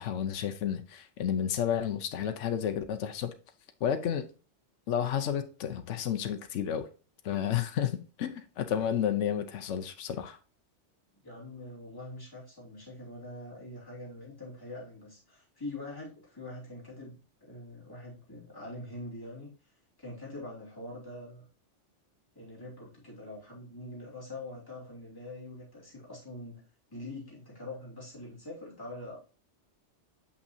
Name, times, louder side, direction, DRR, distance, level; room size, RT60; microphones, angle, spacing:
voice 1, 0.0-3.3 3.8-4.3 4.9-6.9 7.2-10.4, left 9 dB, 75° left, 1.0 m, -31 dB
voice 2, 11.2-19.5 20.0-21.5 22.3-26.6 26.9-29.2, left 2 dB, 15° left, 2.8 m, -44 dB
6.6 x 5.7 x 2.6 m
omnidirectional pair, 1.3 m